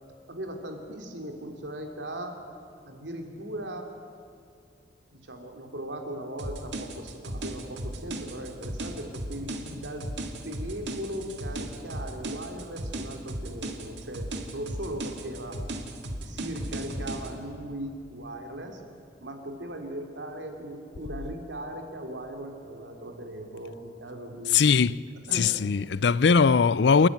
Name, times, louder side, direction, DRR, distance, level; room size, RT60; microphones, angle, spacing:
voice 1, 0.3-2.4 2.9-3.9 5.1-10.1 10.4-15.6 16.2-18.8 19.2-24.6 25.3-25.5, right 1 dB, 90° right, 3.0 m, -38 dB
sound 1, 6.4-17.3, right 1 dB, 75° right, 1.9 m, -36 dB
voice 2, 24.5-25.0 25.3-27.1, left 5 dB, 70° left, 0.5 m, -20 dB
28.0 x 11.5 x 9.4 m
head